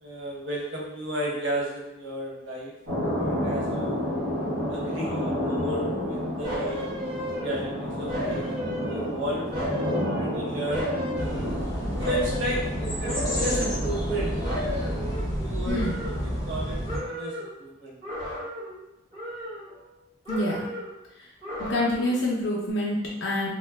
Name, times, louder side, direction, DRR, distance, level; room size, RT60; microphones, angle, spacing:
voice 1, 0.0-2.7 3.2-4.1 4.7-6.9 7.4-9.5 10.2-11.5 12.0-14.3 15.1-18.0, right 1 dB, 70° right, -4 dB, 0.7 m, -33 dB
sound 1, 2.9-15.1, left 1 dB, 90° right, 0.9 m, -31 dB
sound 2, 6.4-7.7 8.1-9.2 9.5-11.6 12.0-12.6 13.0-14.2 14.4-16.6 16.9-17.5 18.0-18.8 19.1-20.0 20.2-21.0 21.4-22.2 22.6-22.7, equal, 25° right, 0.9 m, -34 dB
sound 3, 11.2-17.0, equal, 20° left, 0.6 m, -30 dB
voice 2, 15.7-16.0 20.3-20.7 21.6-23.5, left 1 dB, 70° left, -5 dB, 0.5 m, -27 dB
2.4 x 2.2 x 3.3 m, 0.88 s
head